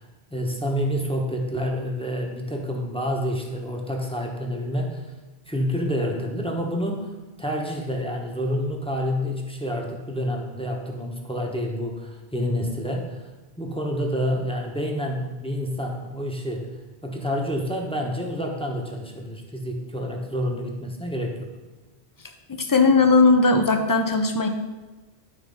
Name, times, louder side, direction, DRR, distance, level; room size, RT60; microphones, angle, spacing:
voice 1, 0.3-5.0 5.5-7.1 7.4-13.2 13.6-16.7 17.0-21.5, equal, 5° left, 0 dB, 1.1 m, -28 dB
voice 2, 22.5-24.5, left 3 dB, 20° left, 5 dB, 0.7 m, -18 dB
11.5 x 4.3 x 5.5 m, 1.1 s
omnidirectional pair, 1.1 m